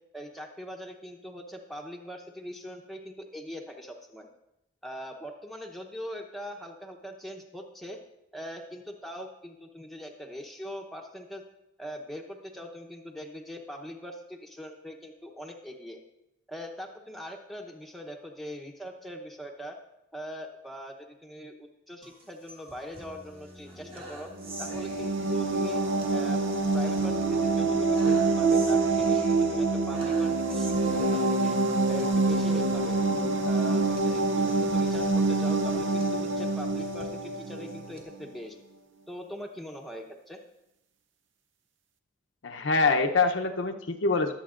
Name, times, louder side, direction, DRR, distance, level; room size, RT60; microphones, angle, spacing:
voice 1, 0.1-4.3 4.8-8.0 8.3-11.4 11.8-16.0 16.5-19.8 20.1-24.3 24.6-25.8 26.1-26.4 26.7-31.6 31.9-33.0 33.5-38.6 39.1-40.4, equal, ahead, 1 dB, 0.8 m, -41 dB
sound 1, 22.0-38.0, right 1 dB, 30° right, 1.5 m, -46 dB
sound 2, 24.4-38.0, right 3 dB, 75° right, 0.7 m, -26 dB
voice 2, 42.4-44.3, left 3 dB, 80° left, 4 dB, 0.8 m, -25 dB
21.0 x 8.1 x 2.5 m, 0.86 s
head